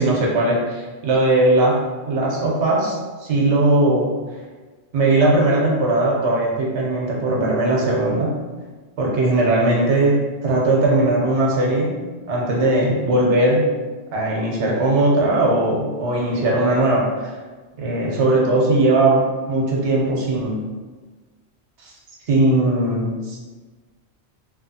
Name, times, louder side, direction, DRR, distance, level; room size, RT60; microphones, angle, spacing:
voice 1, 0.0-4.1 4.9-8.4 9.0-12.0 12.3-13.7 14.1-17.3 17.8-20.6 21.8-21.9 22.3-23.4, right 2 dB, 85° right, -2 dB, 1.0 m, -19 dB
2.9 x 2.4 x 2.6 m, 1.3 s
omnidirectional pair, 1.2 m